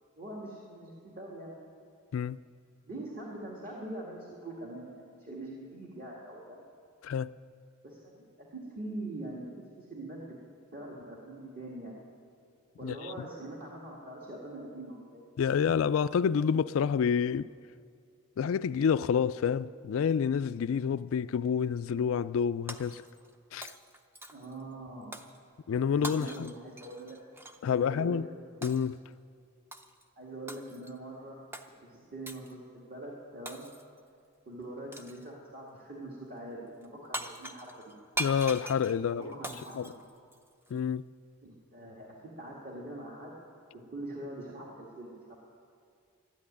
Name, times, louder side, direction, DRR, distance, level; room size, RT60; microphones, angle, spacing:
voice 1, 0.2-1.6 2.9-6.6 7.8-9.5 9.8-10.3 10.7-12.0 12.8-15.3 24.3-25.2 25.9-27.2 27.7-28.2 30.2-31.4 31.8-33.7 34.5-37.9 39.0-40.1 41.4-43.3 43.7-45.3, right 1 dB, 40° right, 1.9 m, -43 dB
voice 2, 12.8-13.3 15.4-17.5 18.4-23.0 23.5-23.7 25.7-26.5 27.6-28.3 28.6-29.0 38.2-39.3 39.8-39.9 40.7-41.0, left 7 dB, 60° left, 0.3 m, -28 dB
Shatter, 22.7-23.3 23.6-24.6 25.1-25.4 26.0-27.6 28.6-29.0 29.7-30.0 30.5-31.0 31.5-31.7 32.3-32.5 33.5-34.0 34.9-35.3 36.8-36.9 37.1-40.7, right 2 dB, 10° right, 0.5 m, -41 dB
12.5 x 10.5 x 10.0 m
head